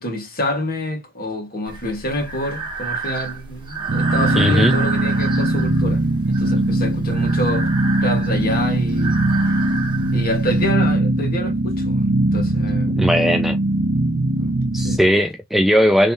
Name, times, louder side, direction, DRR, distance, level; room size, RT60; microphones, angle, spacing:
voice 1, 0.0-6.0 6.3-7.7 8.0-9.1 10.1-12.9 13.3-13.4 14.4-15.0, left 1 dB, 45° left, 1.9 m, -27 dB
Breathing, 1.7-10.7, right 5 dB, 20° right, 1.3 m, -30 dB
sound 1, 3.9-15.0, right 1 dB, 60° right, 0.6 m, -20 dB
voice 2, 4.4-4.8 12.9-13.6 14.7-16.1, equal, ahead, 0.4 m, -17 dB
3.3 x 3.3 x 2.9 m
head